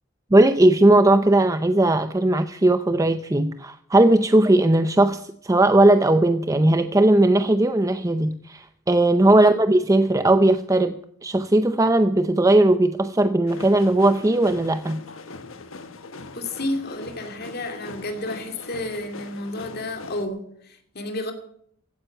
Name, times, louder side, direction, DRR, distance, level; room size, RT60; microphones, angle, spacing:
voice 1, 0.3-10.9 11.2-15.0, right 1 dB, 15° right, 9 dB, 0.5 m, -18 dB
sound 1, 13.5-20.3, left 3 dB, 85° left, 1.3 m, -41 dB
voice 2, 16.3-21.3, left 1 dB, 50° left, 6 dB, 2.6 m, -31 dB
15.5 x 9.4 x 6.8 m, 0.66 s
head